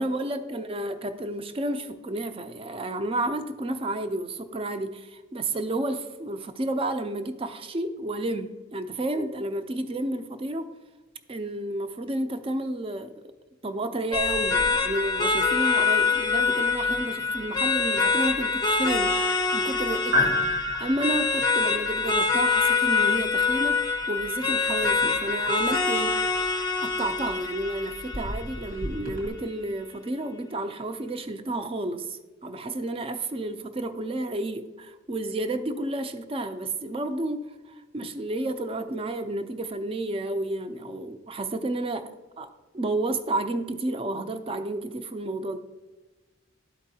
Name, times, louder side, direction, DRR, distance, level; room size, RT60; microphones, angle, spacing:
voice 1, 0.0-10.7 11.3-13.1 13.6-20.4 20.8-26.2 26.8-37.5 37.9-42.1 42.4-42.5 42.7-45.6, right 1 dB, 30° right, 0.4 m, -31 dB
sound 1, 14.1-29.1, left 4 dB, 20° left, 0.5 m, -25 dB
sound 2, 14.1-29.3, left 2 dB, 90° right, 1.7 m, -35 dB
12.0 x 4.5 x 2.7 m
head